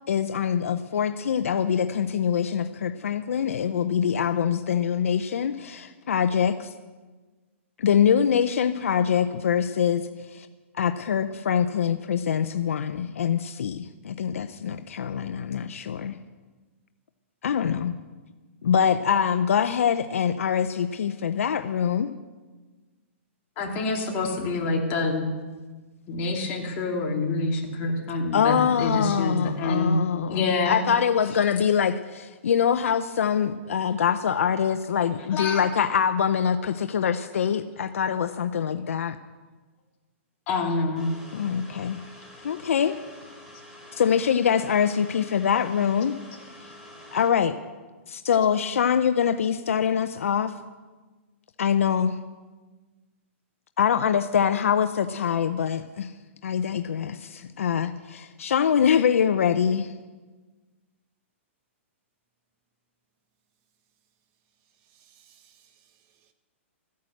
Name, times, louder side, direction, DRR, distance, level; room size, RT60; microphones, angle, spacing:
voice 1, 0.1-6.7 7.8-10.0 10.3-10.5 10.7-16.2 17.4-17.9 18.6-22.1 28.3-39.2 41.3-42.0 42.4-43.0 43.9-46.1 47.1-47.5 48.1-50.5 51.6-52.2 53.8-56.1 56.4-59.9, left 8 dB, 80° left, 0.7 m, -24 dB
voice 2, 23.6-25.3 26.1-30.9 35.3-35.6 40.5-41.1, left 3 dB, 30° left, 2.8 m, -26 dB
sound 1, 41.0-47.3, left 1 dB, 5° right, 3.4 m, -47 dB
voice 3, 64.8-66.3, right 9 dB, 35° right, 1.4 m, -61 dB
14.5 x 9.5 x 7.8 m
hypercardioid pair, 150°, 7 cm